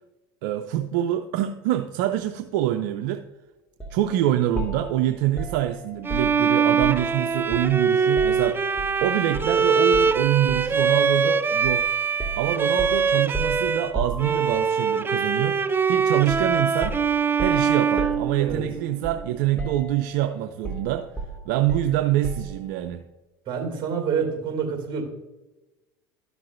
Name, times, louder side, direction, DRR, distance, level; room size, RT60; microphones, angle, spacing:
voice 1, 0.4-3.2 3.9-11.9 12.4-15.6 15.9-17.0 17.4-21.1 21.5-23.0, right 12 dB, 75° right, 8 dB, 0.5 m, -25 dB
sound 1, 3.8-4.0 4.6-7.2 7.5-9.0 9.3-9.6 9.9-10.8 11.6-11.8 12.2-14.8 16.3-16.6 16.8-19.3 19.6-20.2 20.6-22.6, right 3 dB, 10° left, 2.0 m, -34 dB
Bowed string instrument, 6.0-13.9 14.2-19.0, right 5 dB, 20° right, 0.4 m, -23 dB
voice 2, 23.5-25.0, right 6 dB, 45° right, 3 dB, 2.4 m, -27 dB
12.5 x 5.9 x 2.5 m, 1.1 s
hypercardioid pair, 85°, 11 cm